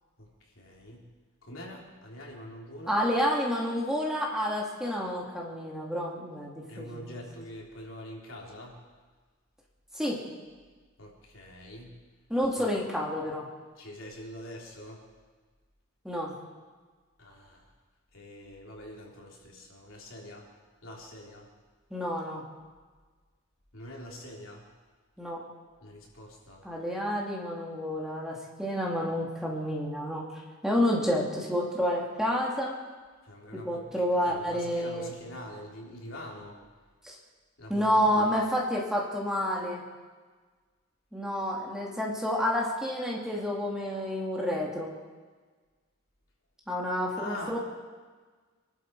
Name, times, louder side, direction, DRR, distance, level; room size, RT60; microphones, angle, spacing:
voice 1, 0.2-1.1 1.4-3.0 6.7-8.8 11.0-12.0 12.6-12.7 13.8-15.0 17.2-17.7 18.1-20.5 20.8-21.5 23.7-24.7 25.8-26.7 33.2-36.6 37.6-38.4 47.2-47.6, left 1 dB, 70° left, -2 dB, 3.5 m, -44 dB
voice 2, 2.9-7.2 9.9-10.2 12.3-13.5 16.0-16.3 21.9-22.4 25.2-25.4 26.6-30.3 30.6-32.7 33.5-35.1 37.0-37.1 37.7-39.8 41.1-44.9 46.7-47.6, equal, 5° right, -3 dB, 2.4 m, -29 dB
25.0 x 12.0 x 4.7 m, 1.4 s
head